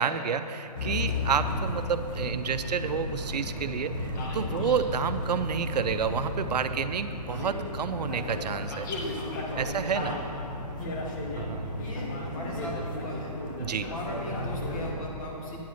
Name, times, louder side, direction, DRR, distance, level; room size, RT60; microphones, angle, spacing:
voice 1, 0.0-8.9 9.6-10.2 11.4-11.9 13.6-13.9, right 6 dB, 80° right, 10 dB, 0.5 m, -30 dB
sound 1, 0.8-14.9, left 2 dB, 30° left, 0.8 m, -34 dB
voice 2, 9.6-10.0 10.8-11.0 11.8-13.3 13.8-15.6, left 1 dB, 55° left, -3 dB, 2.1 m, -38 dB
9.2 x 4.8 x 5.8 m, 2.8 s
hypercardioid pair, 160°, 21 cm